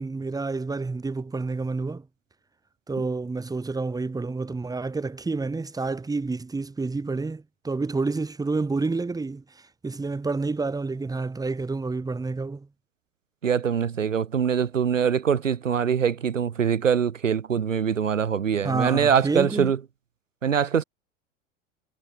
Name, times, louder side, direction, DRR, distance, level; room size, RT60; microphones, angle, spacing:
voice 1, 0.0-2.1 2.9-9.4 9.8-12.7 18.6-19.7, right 3 dB, 10° right, 2.1 m, -29 dB
voice 2, 13.4-19.8 20.4-20.8, right 7 dB, 80° right, 1.6 m, -23 dB
figure-of-eight pair, 80°, 38 cm